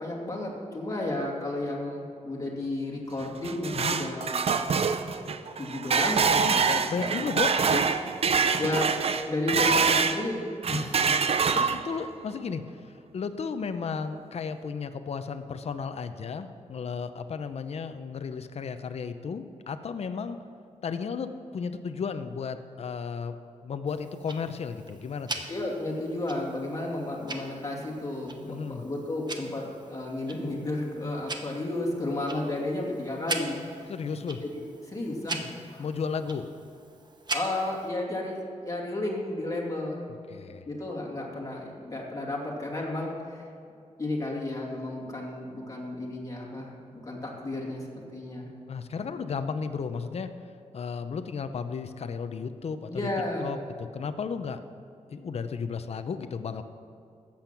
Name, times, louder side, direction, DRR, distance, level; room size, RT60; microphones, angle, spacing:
voice 1, 0.0-4.5 5.6-7.3 8.6-8.9 9.2-11.1 13.8-13.9 25.5-33.9 34.5-35.9 37.3-40.1 40.7-43.5 44.0-47.9 48.1-48.5 52.9-53.5, left 2 dB, 30° left, -2 dB, 2.6 m, -33 dB
sound 1, 3.2-10.2 10.6-12.0, right 5 dB, 55° right, 0.6 m, -25 dB
voice 2, 6.4-7.9 11.5-12.6 13.1-20.4 20.8-23.4 23.6-25.3 28.5-28.8 33.9-34.4 35.8-36.5 40.3-40.6 48.7-50.3 50.7-53.1 53.4-54.6 55.1-56.6, left 5 dB, 60° left, 9 dB, 0.7 m, -34 dB
Tick-tock, 23.9-37.9, right 3 dB, 35° right, 1.0 m, -41 dB
13.5 x 8.7 x 6.0 m, 2.6 s
wide cardioid pair, 120°, 12 cm